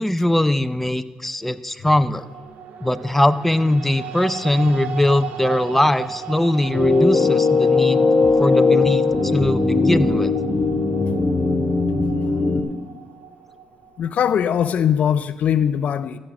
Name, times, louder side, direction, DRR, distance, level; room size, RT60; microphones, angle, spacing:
voice 1, 0.0-2.2 2.8-8.1 8.4-10.3, left 1 dB, 10° left, 0.6 m, -21 dB
sound 1, 2.2-14.4, right 7 dB, 80° right, 0.9 m, -36 dB
sound 2, 6.7-12.6, left 3 dB, 30° left, 2.0 m, -19 dB
voice 2, 14.0-16.2, left 8 dB, 65° left, 0.5 m, -20 dB
14.5 x 6.4 x 5.9 m
supercardioid pair, 65°, 3 cm